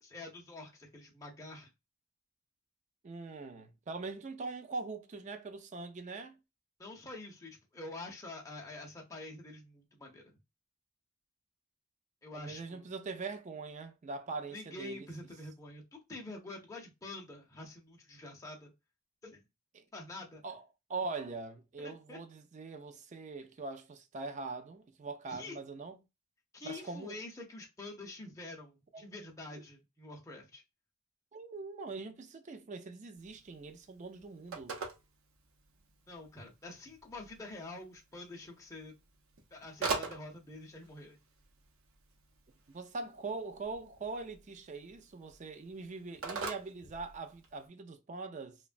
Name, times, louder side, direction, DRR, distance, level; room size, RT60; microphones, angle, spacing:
voice 1, 0.0-1.7 6.8-10.4 12.2-12.8 14.5-18.7 19.2-19.4 19.9-20.4 21.8-22.2 25.3-25.6 26.5-30.6 36.1-39.0 39.5-41.2, left 2 dB, 15° left, 0.5 m, -47 dB
voice 2, 3.0-6.4 12.3-15.1 19.7-19.8 20.4-20.6 20.9-26.0 26.6-27.2 28.9-29.1 29.5-29.6 31.3-34.8 42.7-48.6, right 3 dB, 35° right, 0.4 m, -42 dB
Telephone, 33.2-47.7, right 4 dB, 70° right, 0.6 m, -45 dB
2.9 x 2.2 x 2.4 m
head